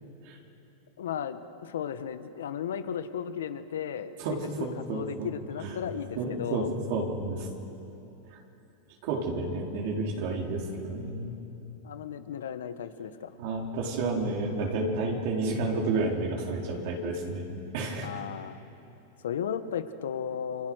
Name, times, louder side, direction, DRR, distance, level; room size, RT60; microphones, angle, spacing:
voice 1, 1.0-6.7 11.8-13.3 18.0-18.6 19.2-20.7, left 8 dB, 85° left, 11 dB, 1.3 m, -35 dB
voice 2, 4.2-5.3 5.6-5.7 6.2-6.6 6.9-7.5 9.0-11.3 13.4-17.4 17.7-18.2, right 3 dB, 60° right, -1 dB, 4.3 m, -31 dB
29.0 x 24.0 x 6.4 m, 2.9 s
hypercardioid pair, 125°, 0 cm